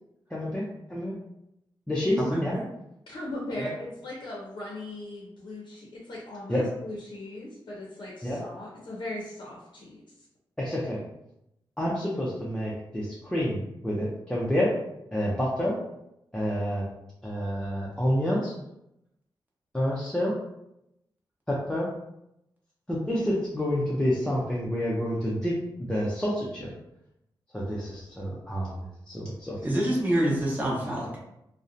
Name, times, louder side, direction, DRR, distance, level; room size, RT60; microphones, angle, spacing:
voice 1, 0.3-1.1 1.9-2.6 3.6-3.7 6.5-6.7 8.2-8.4 10.6-11.0 11.8-14.7 15.1-15.7 16.3-16.8 17.2-18.5 19.7-20.3 21.5-21.9 22.9-26.7 27.5-29.7, equal, 10° left, -6 dB, 0.5 m, -28 dB
voice 2, 2.2-2.6 29.6-31.2, right 1 dB, 20° right, -5 dB, 0.9 m, -26 dB
voice 3, 3.1-10.3, left 1 dB, 60° left, -4 dB, 0.6 m, -39 dB
2.6 x 2.1 x 2.5 m, 0.85 s
wide cardioid pair, 100°, 9 cm